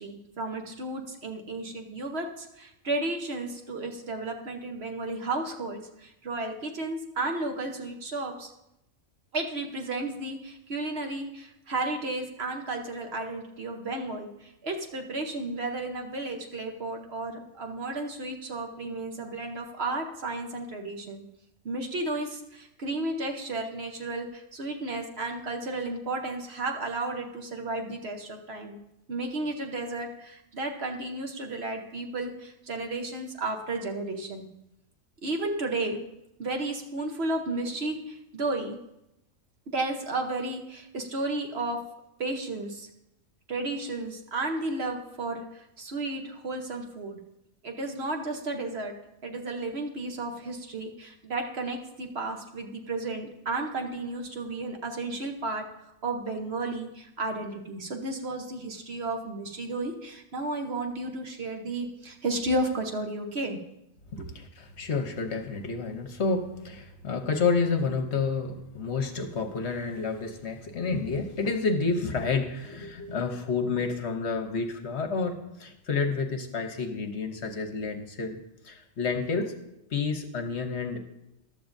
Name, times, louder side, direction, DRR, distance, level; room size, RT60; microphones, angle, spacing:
voice 1, 0.0-8.5 9.3-21.2 21.6-28.8 29.1-34.5 35.2-36.0 36.4-38.8 39.7-41.8 42.2-42.9 43.5-47.2 47.6-48.9 49.2-63.6 64.2-64.3, right 2 dB, 50° right, 3 dB, 1.1 m, -33 dB
voice 2, 64.3-78.4 78.6-79.5 79.9-81.0, left 4 dB, 55° left, 6 dB, 1.1 m, -29 dB
14.0 x 11.5 x 2.6 m, 0.87 s
omnidirectional pair, 1.4 m